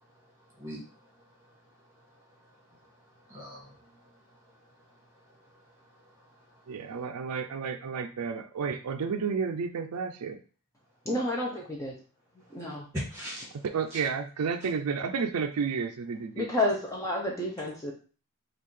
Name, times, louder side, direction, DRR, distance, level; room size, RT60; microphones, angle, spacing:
voice 1, 3.3-4.1 6.1-6.3 6.6-6.7 12.9-13.6 13.9-14.0, equal, 15° right, -4 dB, 2.1 m, -39 dB
voice 2, 6.7-10.4 13.5-16.5, right 5 dB, 80° right, 8 dB, 0.4 m, -31 dB
voice 3, 11.1-11.9 12.5-12.9 16.4-17.9, left 1 dB, 15° left, -2 dB, 0.6 m, -30 dB
5.4 x 2.4 x 3.1 m, 0.37 s
head